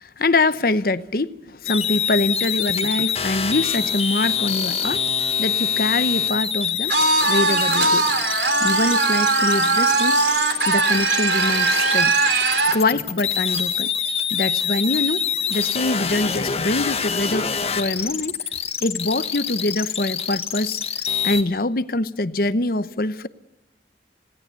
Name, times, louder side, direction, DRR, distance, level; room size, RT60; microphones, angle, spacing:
voice 1, 0.0-5.0 5.4-6.9 7.3-8.0 8.6-10.3 10.7-12.1 12.7-13.9 14.3-18.4 18.8-20.8 21.2-23.3, left 2 dB, 55° left, 0.9 m, -24 dB
sound 1, 1.7-21.4, left 7 dB, 35° left, 1.7 m, -25 dB
sound 2, 6.9-12.8, right 3 dB, 85° right, 3.6 m, -20 dB
19.5 x 17.5 x 8.3 m
head